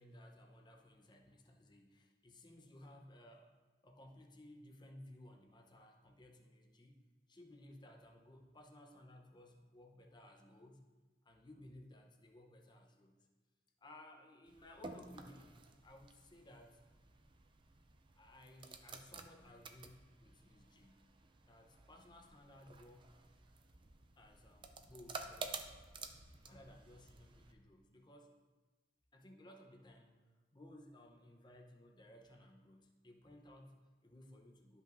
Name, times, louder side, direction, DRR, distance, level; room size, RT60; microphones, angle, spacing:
voice 1, 0.0-3.6 3.8-7.0 7.3-10.9 11.2-13.2 13.8-16.8 18.1-21.0 21.5-23.2 24.2-25.7 26.5-28.4 29.1-30.2 30.5-34.8, left 1 dB, 25° left, 2 dB, 0.8 m, -59 dB
sound 1, 14.5-27.5, right 4 dB, 25° right, 0.4 m, -52 dB
12.5 x 5.4 x 2.6 m, 1.3 s
head